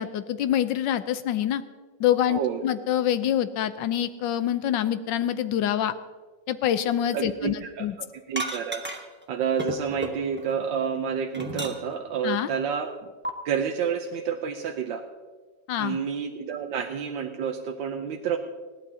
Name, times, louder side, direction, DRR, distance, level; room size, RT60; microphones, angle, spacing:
voice 1, 0.0-1.6 2.0-5.9 6.5-8.0 12.2-12.5 15.7-16.0, left 10 dB, 90° left, 12 dB, 1.4 m, -26 dB
voice 2, 2.3-2.6 7.1-7.8 8.3-8.8 9.3-12.9 13.4-15.1 15.8-18.4, right 7 dB, 90° right, 4 dB, 1.5 m, -29 dB
sound 1, 8.4-9.2 9.6-10.6 11.0-12.1 13.2-13.3, right 1 dB, 10° right, 0.7 m, -33 dB
20.5 x 15.5 x 2.8 m, 1.4 s
omnidirectional pair, 1.9 m